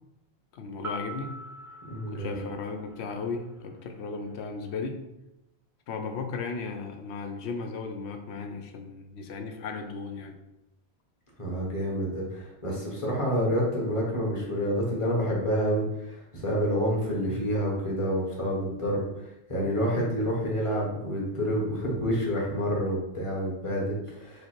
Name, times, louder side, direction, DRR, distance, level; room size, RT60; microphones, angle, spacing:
voice 1, 0.5-1.4 2.1-5.1 5.9-10.4, left 4 dB, 80° left, 5 dB, 0.9 m, -36 dB
sound 1, 0.8-3.4, equal, 5° right, 0.6 m, -42 dB
voice 2, 1.9-2.4 11.4-19.2 19.5-24.5, equal, 30° left, -3 dB, 1.2 m, -28 dB
5.0 x 2.1 x 4.5 m, 0.89 s
omnidirectional pair, 1.1 m